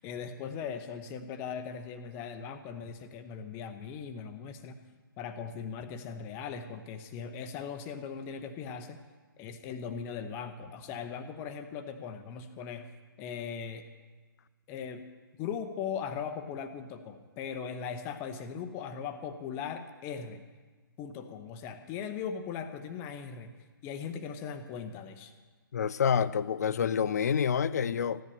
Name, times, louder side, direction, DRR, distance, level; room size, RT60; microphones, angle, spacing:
voice 1, 0.0-4.8 5.2-9.0 9.4-12.9 13.2-13.8 14.7-15.0 15.4-20.4 21.0-23.5 23.8-25.3, left 7 dB, 20° left, 8 dB, 0.8 m, -39 dB
voice 2, 25.7-28.2, left 7 dB, 45° left, 17 dB, 0.5 m, -28 dB
15.5 x 11.0 x 6.9 m, 1.4 s
figure-of-eight pair, 130°, 12 cm